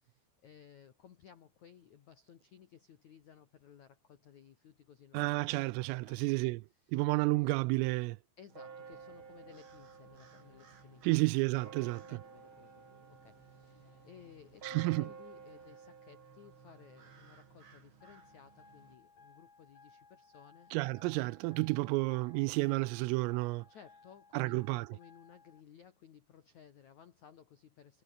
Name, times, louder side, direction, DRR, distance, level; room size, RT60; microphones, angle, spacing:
voice 1, 0.0-5.7 6.0-7.0 8.4-11.2 11.6-12.8 13.1-20.7 23.7-28.0, left 8 dB, 75° left, 1.7 m, -58 dB
voice 2, 5.1-6.6 6.9-8.2 11.0-12.0 14.6-15.1 20.7-23.7 24.3-24.9, right 23 dB, 85° right, 3.2 m, -31 dB
sound 1, 8.5-18.9, right 6 dB, 40° right, 2.1 m, -53 dB
sound 2, 8.9-15.8, left 7 dB, 60° left, 6.5 m, -68 dB
sound 3, 18.0-25.6, left 4 dB, 40° left, 7.8 m, -61 dB
omnidirectional pair, 5.9 m